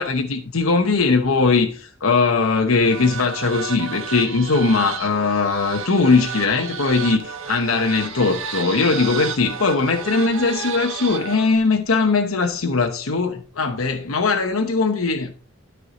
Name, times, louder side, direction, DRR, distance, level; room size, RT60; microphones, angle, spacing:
voice 1, 0.0-15.3, left 4 dB, 90° left, 1.0 m, -20 dB
sound 1, 2.8-11.6, right 6 dB, 75° right, 1.4 m, -32 dB
12.5 x 4.7 x 5.1 m
head